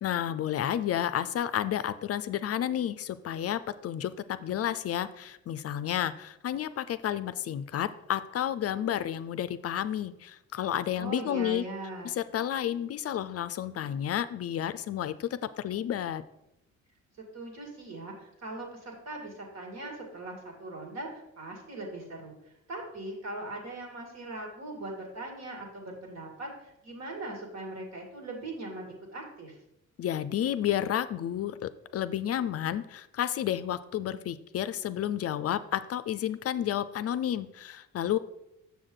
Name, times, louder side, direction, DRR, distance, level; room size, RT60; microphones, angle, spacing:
voice 1, 0.0-11.7 12.0-16.2 30.0-38.2, left 10 dB, 50° left, 14 dB, 0.4 m, -31 dB
voice 2, 11.0-12.2 17.3-29.6, right 2 dB, 60° right, 1 dB, 2.4 m, -40 dB
7.1 x 6.3 x 3.9 m, 0.86 s
cardioid pair, 90°, 30 cm